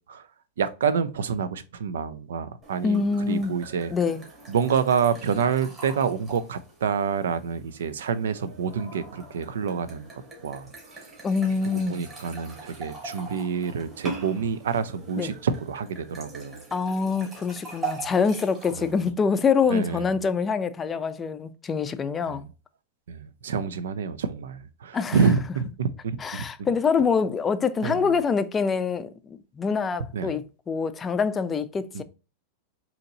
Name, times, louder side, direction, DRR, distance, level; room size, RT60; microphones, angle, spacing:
voice 1, 0.6-3.9 4.5-11.0 11.7-16.6 18.0-18.1 18.7-18.9 19.7-20.1 22.3-22.5 23.1-26.4 27.8-28.1 30.1-30.4 31.9-32.0, right 6 dB, 85° right, 0.4 m, -28 dB
sound 1, 2.6-19.1, right 4 dB, 25° right, 1.8 m, -42 dB
voice 2, 2.8-3.5 3.9-4.2 11.2-12.1 15.2-15.3 16.7-22.4 24.9-25.2 26.2-32.0, left 5 dB, 20° left, 0.4 m, -25 dB
3.9 x 2.8 x 2.7 m
hypercardioid pair, 120°, 0 cm